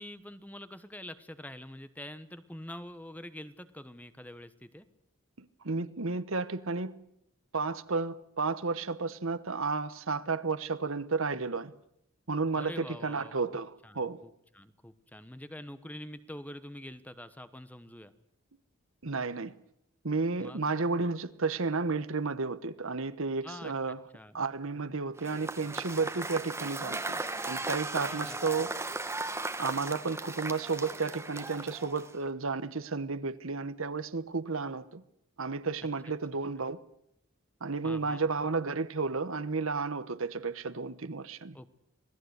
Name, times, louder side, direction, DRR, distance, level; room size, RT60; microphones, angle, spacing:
voice 1, 0.0-4.9 12.6-18.1 20.4-20.6 23.4-24.4 28.0-28.4 37.8-38.2 41.5-41.7, left 1 dB, 5° left, 1.1 m, -46 dB
voice 2, 5.4-7.1 7.5-11.7 12.3-14.2 19.0-19.6 20.0-24.0 24.3-27.2 27.5-28.9 29.6-35.0 35.4-36.8 37.6-41.6, right 4 dB, 70° right, 1.1 m, -32 dB
Cheering / Applause / Crowd, 25.2-32.3, right 2 dB, 10° right, 1.4 m, -37 dB
26.5 x 18.0 x 8.1 m
head